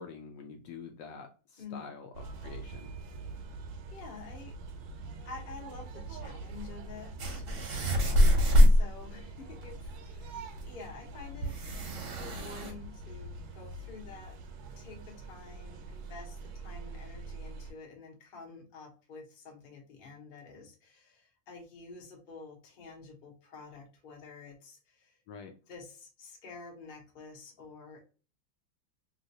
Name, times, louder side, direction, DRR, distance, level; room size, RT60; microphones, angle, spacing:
voice 1, 0.0-2.9 8.2-8.4 25.3-25.5, left 5 dB, 75° left, 4 dB, 1.1 m, -46 dB
voice 2, 1.6-1.9 3.5-4.5 5.2-8.2 8.6-11.5 12.1-14.4 14.8-25.2 25.7-28.0, left 4 dB, 40° left, 0 dB, 0.9 m, -49 dB
sound 1, 2.1-17.7, right 2 dB, 75° right, 1.2 m, -44 dB
sound 2, 7.2-8.8 10.3-10.4 10.6-10.7 11.4-12.7, equal, 50° right, 1.0 m, -24 dB
3.1 x 2.9 x 2.6 m, 0.35 s
omnidirectional pair, 2.1 m